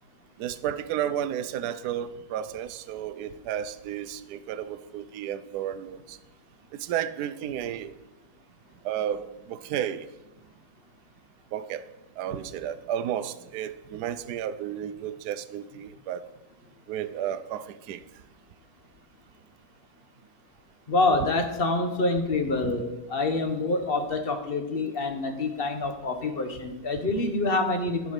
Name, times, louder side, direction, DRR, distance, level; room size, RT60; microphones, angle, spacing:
voice 1, 0.4-6.2 6.7-7.9 8.8-10.1 11.5-11.8 12.2-16.2 16.9-18.0 22.6-22.7, right 10 dB, 70° right, 11 dB, 1.1 m, -32 dB
voice 2, 20.9-28.1, left 2 dB, 35° left, 6 dB, 1.1 m, -26 dB
11.0 x 6.3 x 6.6 m, 0.96 s
omnidirectional pair, 1.9 m